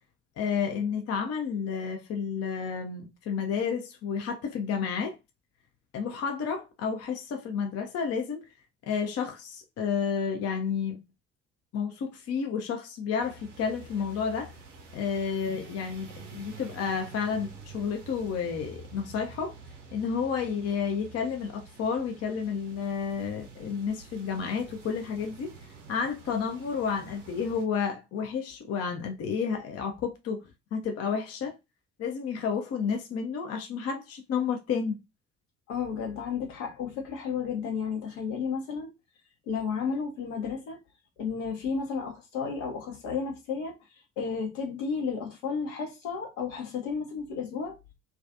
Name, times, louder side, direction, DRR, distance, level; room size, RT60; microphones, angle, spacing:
voice 1, 0.4-5.2 5.9-8.4 8.8-11.0 11.7-14.5 14.9-19.5 19.9-25.5 25.9-31.6 32.0-35.0, left 6 dB, 40° left, 0.6 m, -31 dB
sound 1, 13.2-27.6, right 4 dB, 85° right, 0.5 m, -48 dB
voice 2, 35.7-38.9 39.5-40.8 41.2-43.7 44.2-47.8, left 6 dB, 75° left, 0.8 m, -32 dB
2.3 x 2.3 x 2.5 m
figure-of-eight pair, 50°, 37 cm